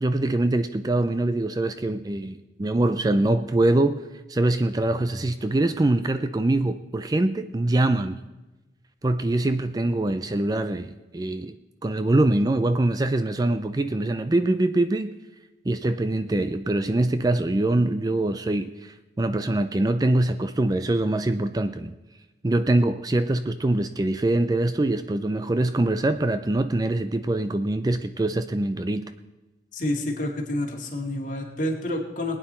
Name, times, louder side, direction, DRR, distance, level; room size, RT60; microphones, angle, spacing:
voice 1, 0.0-8.2 9.0-11.6 11.8-15.1 15.7-21.9 22.4-29.0, right 2 dB, 20° right, 10 dB, 0.4 m, -24 dB
voice 2, 29.7-32.4, left 1 dB, 45° left, 0 dB, 2.1 m, -28 dB
20.5 x 9.1 x 4.3 m, 1.1 s
head